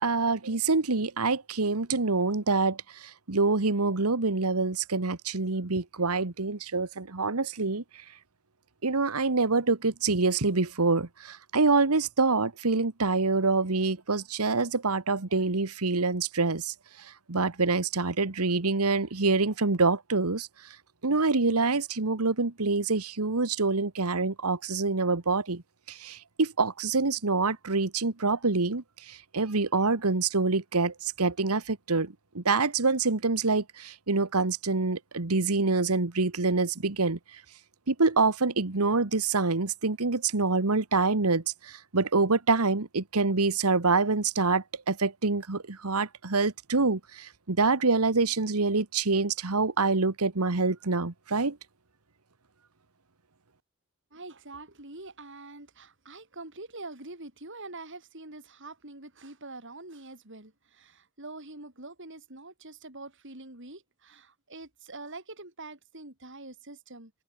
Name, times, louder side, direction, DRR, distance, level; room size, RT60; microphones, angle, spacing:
voice 1, 0.0-2.8 3.3-7.8 8.8-16.7 17.3-20.5 21.0-25.6 25.9-37.2 37.9-51.6, right 3 dB, 85° right, 1.5 m, -26 dB
voice 2, 54.1-67.1, right 2 dB, 55° right, 5.8 m, -45 dB
head